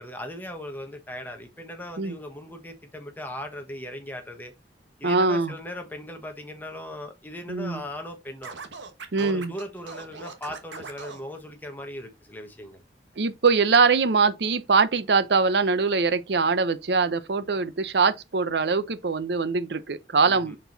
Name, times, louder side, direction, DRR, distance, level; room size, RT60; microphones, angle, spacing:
voice 1, 0.0-4.5 5.0-8.5 9.2-12.8 20.2-20.6, left 1 dB, 10° left, 1.1 m, -38 dB
voice 2, 5.0-5.5 7.5-7.8 9.1-9.5 13.2-20.6, right 4 dB, 70° right, 0.6 m, -22 dB
Scratching (performance technique), 8.4-11.2, right 4 dB, 90° right, 1.2 m, -40 dB
6.2 x 4.5 x 3.9 m
head